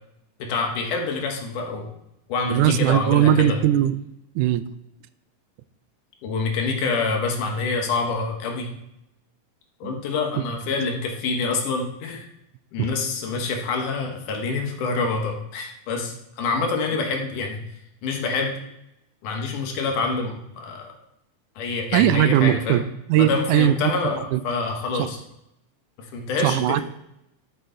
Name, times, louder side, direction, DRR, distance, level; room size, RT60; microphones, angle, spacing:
voice 1, 0.4-1.9 2.3-3.6 6.2-8.7 9.8-12.3 12.7-17.6 18.0-18.5 19.2-20.9 21.6-22.8 23.2-25.2 26.0-26.8, left 4 dB, 80° left, 2 dB, 2.7 m, -26 dB
voice 2, 2.5-4.0 4.4-4.7 9.8-9.9 12.8-12.9 21.9-22.8 23.1-23.9 24.3-24.4 25.0-25.1 26.4-26.8, right 11 dB, 85° right, 13 dB, 2.0 m, -19 dB
12.0 x 5.4 x 3.8 m, 0.84 s
omnidirectional pair, 3.6 m